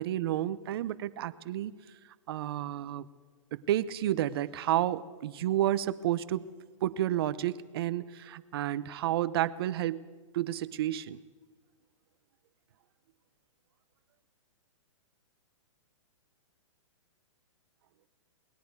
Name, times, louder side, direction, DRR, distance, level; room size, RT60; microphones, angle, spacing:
voice 1, 0.0-1.7 2.3-3.1 3.5-6.4 6.8-10.0 10.3-11.2, right 12 dB, 45° right, 14 dB, 0.8 m, -31 dB
28.0 x 20.0 x 4.8 m, 1.4 s
hypercardioid pair, 160°, 17 cm